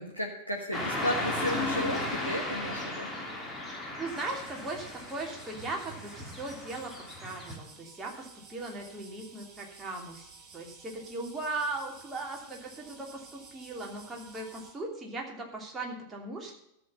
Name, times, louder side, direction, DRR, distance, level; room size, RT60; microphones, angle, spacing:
voice 1, 0.0-3.1, equal, 85° left, 0 dB, 1.4 m, -34 dB
Car passing by / Traffic noise roadway noise, 0.7-7.5, left 2 dB, 10° left, 3.0 m, -35 dB
voice 2, 4.0-6.9 7.2-16.6, right 2 dB, 15° right, 0 dB, 3.0 m, -38 dB
sound 1, 4.1-14.7, right 4 dB, 35° right, 5.8 m, -53 dB
13.5 x 6.4 x 6.8 m, 0.80 s
figure-of-eight pair, 90°, 0 cm